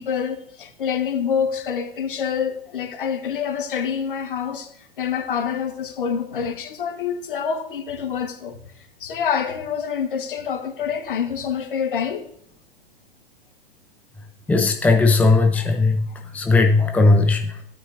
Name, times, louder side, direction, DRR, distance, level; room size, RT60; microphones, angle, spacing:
voice 1, 0.0-4.7 5.0-8.6 9.0-12.2 15.5-15.6, left 7 dB, 60° left, 1.5 m, -26 dB
voice 2, 14.5-16.0 16.3-17.6, left 3 dB, 5° left, 0.7 m, -17 dB
12.5 x 9.3 x 2.7 m
figure-of-eight pair, 100°, 30 cm